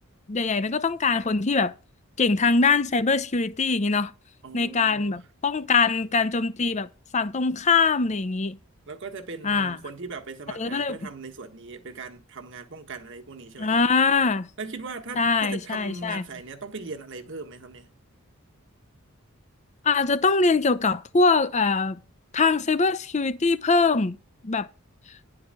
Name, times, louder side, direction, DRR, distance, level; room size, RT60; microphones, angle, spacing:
voice 1, 0.3-1.7 2.2-4.1 4.5-6.9 7.1-8.6 9.4-9.8 10.6-11.0 13.6-14.5 15.2-16.2 19.8-22.0 22.3-24.2 24.4-24.7, left 4 dB, 30° left, 0.6 m, -23 dB
voice 2, 4.4-5.2 8.9-13.8 14.6-17.9, right 4 dB, 55° right, 1.4 m, -39 dB
11.0 x 4.8 x 7.6 m
head